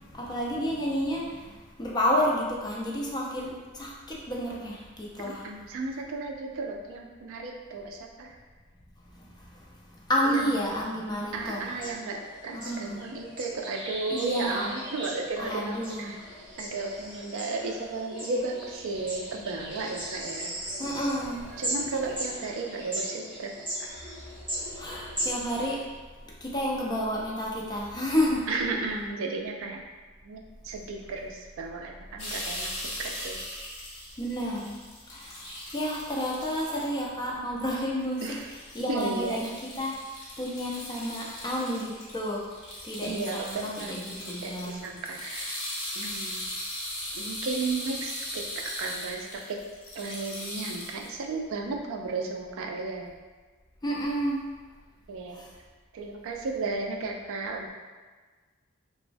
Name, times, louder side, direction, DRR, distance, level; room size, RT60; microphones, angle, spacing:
voice 1, 0.1-1.4 1.8-5.4 10.1-11.6 12.5-13.0 14.1-14.7 15.4-16.2 20.8-21.6 24.6-25.8 26.4-28.5 34.2-34.8 35.1-35.4 35.7-38.2 38.7-39.5 39.8-39.9 40.4-42.4 42.8-44.8 53.8-54.4 55.3-55.5, equal, 20° left, -4 dB, 0.4 m, -30 dB
voice 2, 5.2-8.4 10.2-10.6 11.3-16.2 16.6-20.5 21.6-23.5 23.8-24.0 28.5-29.8 30.2-32.7 33.0-33.4 38.2-38.5 38.9-39.4 43.0-44.1 44.4-45.6 46.0-46.4 47.1-49.6 49.9-53.1 55.1-55.4 55.9-57.7, right 3 dB, 65° right, 2 dB, 0.3 m, -34 dB
sound 1, 11.4-25.8, right 1 dB, 25° right, 0.9 m, -38 dB
sound 2, 32.2-37.0 37.6-37.7 38.0-51.1, left 1 dB, 65° left, 0.9 m, -39 dB
3.0 x 2.0 x 2.5 m, 1.4 s
head